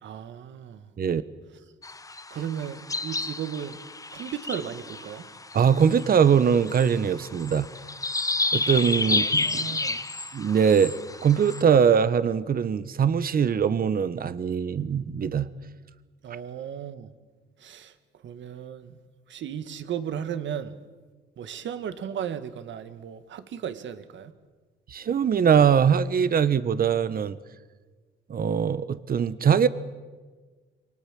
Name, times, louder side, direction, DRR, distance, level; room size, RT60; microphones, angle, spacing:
voice 1, 0.0-0.8 2.3-3.8 4.1-5.2 9.1-10.0 16.2-17.1 17.6-17.9 18.2-18.9 19.3-20.8 21.4-24.3, right 9 dB, 70° right, 1.9 m, -35 dB
sound 1, 1.8-11.6, left 3 dB, 15° left, 1.2 m, -31 dB
voice 2, 5.5-7.7 8.5-9.6 10.3-10.9 11.2-15.5 24.9-27.4 28.3-29.7, right 7 dB, 50° right, 1.3 m, -22 dB
28.0 x 24.0 x 7.7 m
cardioid pair, 90°, 20 cm